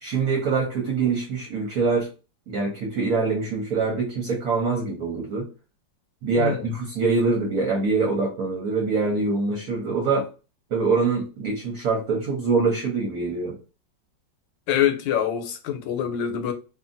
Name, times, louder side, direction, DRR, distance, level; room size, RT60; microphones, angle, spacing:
voice 1, 0.0-2.1 2.5-5.4 6.2-10.3 10.7-13.6, right 4 dB, 60° right, 1.1 m, -24 dB
voice 2, 14.7-16.5, left 9 dB, 85° left, 1.3 m, -25 dB
2.7 x 2.6 x 2.5 m
omnidirectional pair, 2.0 m